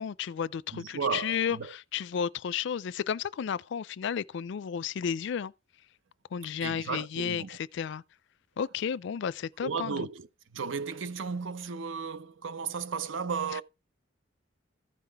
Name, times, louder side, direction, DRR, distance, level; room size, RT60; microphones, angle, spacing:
voice 1, 0.0-5.5 6.3-8.0 8.6-10.0, left 7 dB, 65° left, 0.4 m, -32 dB
voice 2, 0.7-1.7 6.6-7.6 9.6-10.3 10.5-13.6, right 5 dB, 80° right, 0.6 m, -34 dB
14.5 x 5.8 x 3.4 m
head